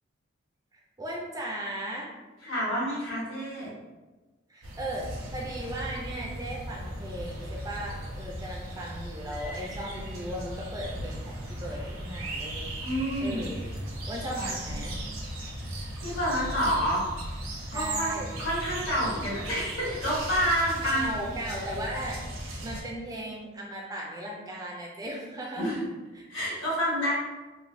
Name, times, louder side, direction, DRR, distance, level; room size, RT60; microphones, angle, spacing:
voice 1, 0.7-2.1 4.5-12.7 13.2-13.6 14.1-15.0 17.7-18.4 20.8-22.2 22.6-25.7 26.1-26.3, right 1 dB, 20° right, -2 dB, 0.3 m, -37 dB
voice 2, 2.4-3.7 12.8-13.4 14.4-14.5 16.0-17.0 17.7-18.1 18.4-21.1 25.6-25.8 26.3-27.1, equal, 65° left, -7 dB, 1.3 m, -28 dB
sound 1, 4.6-22.8, right 1 dB, 85° right, 0.6 m, -37 dB
3.1 x 2.1 x 2.5 m, 1.2 s
head